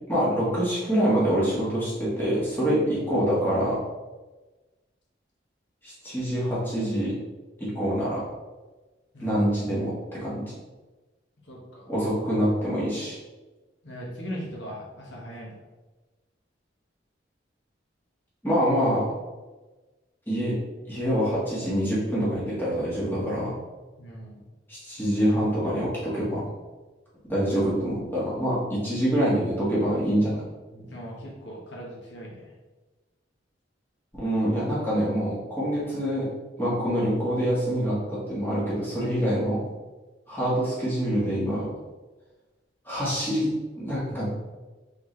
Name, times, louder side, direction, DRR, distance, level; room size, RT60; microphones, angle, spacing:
voice 1, 0.1-3.8 5.8-7.1 7.6-8.2 9.2-10.4 11.9-13.2 18.4-19.1 20.3-20.6 20.9-23.5 24.7-26.5 27.3-30.4 34.1-36.3 36.6-39.6 40.3-41.7 42.8-44.3, equal, 10° left, -8 dB, 1.5 m, -25 dB
voice 2, 11.5-11.9 13.8-15.6 24.0-24.4 30.7-32.5, equal, 80° left, -3 dB, 1.2 m, -39 dB
3.9 x 3.7 x 3.1 m, 1.2 s
head